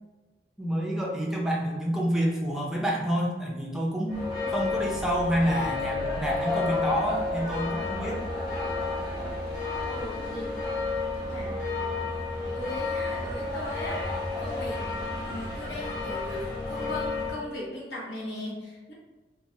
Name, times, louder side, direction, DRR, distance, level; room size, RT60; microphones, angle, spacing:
voice 1, 0.6-4.2 4.5-8.2, equal, 5° right, -3 dB, 0.4 m, -28 dB
sound 1, 4.1-17.4, left 3 dB, 55° left, 1.3 m, -31 dB
voice 2, 9.8-10.6 11.2-11.6 12.5-14.0 14.4-14.8 15.2-18.9, left 1 dB, 75° left, -4 dB, 0.9 m, -38 dB
3.0 x 2.2 x 2.7 m, 1.2 s
head